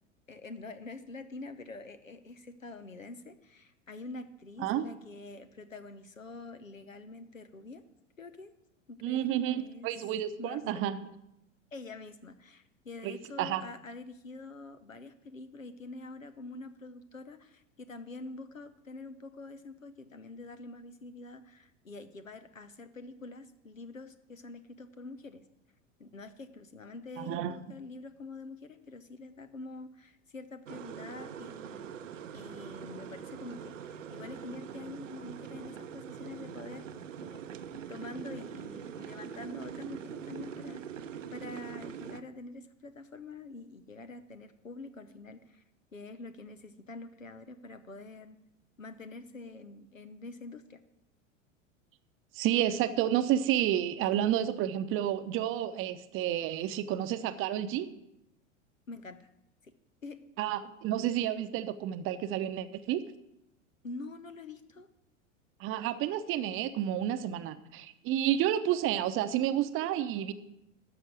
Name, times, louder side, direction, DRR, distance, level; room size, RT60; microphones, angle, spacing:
voice 1, 0.3-7.8 8.2-8.5 8.9-9.9 10.4-10.8 11.7-25.4 26.0-31.9 32.3-36.9 37.2-37.4 37.9-40.8 41.3-45.6 45.9-48.4 48.8-50.8 58.9-59.3 59.6-59.7 60.0-60.2 63.8-64.9, left 3 dB, 85° left, 11 dB, 1.0 m, -46 dB
voice 2, 9.0-11.0 13.0-13.7 27.2-27.6 52.3-57.9 60.4-63.0 65.6-70.3, right 11 dB, 35° right, 11 dB, 0.8 m, -30 dB
sound 1, 30.7-42.2, right 8 dB, 75° right, 0.8 m, -43 dB
12.5 x 6.4 x 7.7 m, 0.84 s
figure-of-eight pair, 85°, 38 cm